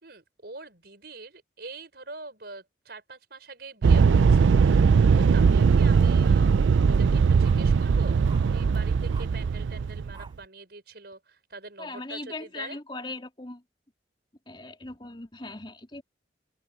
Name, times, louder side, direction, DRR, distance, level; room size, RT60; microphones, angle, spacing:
voice 1, 0.0-12.8, right 3 dB, 60° right, 5.6 m, -44 dB
sound 1, 3.8-10.3, right 5 dB, 85° right, 0.4 m, -20 dB
sound 2, 5.4-7.1 7.4-7.6 8.3-8.5 9.1-9.4 10.1-10.4, right 4 dB, 25° right, 7.4 m, -49 dB
voice 2, 11.8-13.6 14.5-16.0, left 2 dB, 25° left, 3.1 m, -39 dB
head